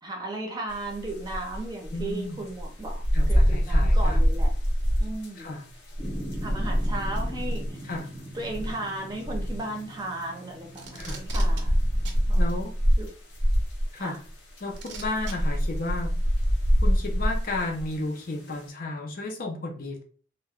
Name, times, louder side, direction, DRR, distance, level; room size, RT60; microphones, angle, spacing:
voice 1, 0.0-3.0 3.3-4.5 5.0-5.5 6.4-7.8 8.3-11.7 12.3-12.5 13.0-13.1 14.0-14.2, right 2 dB, 20° right, 1 dB, 0.6 m, -35 dB
sound 1, 0.7-18.6, equal, 85° left, 1.0 m, -25 dB
voice 2, 1.9-2.4 3.1-4.4 5.4-5.7 7.8-8.1 10.9-11.3 12.4-12.8 13.9-14.2 14.6-16.2 16.8-20.0, left 2 dB, 50° left, 2 dB, 0.5 m, -33 dB
sound 2, 6.0-12.4, right 1 dB, ahead, 0.9 m, -41 dB
Packing tape duct tape, 10.8-11.6 12.1-12.2 13.5-13.6 14.8-15.3 16.4-16.5, right 5 dB, 75° right, 0.6 m, -40 dB
2.2 x 2.1 x 3.5 m, 0.40 s
head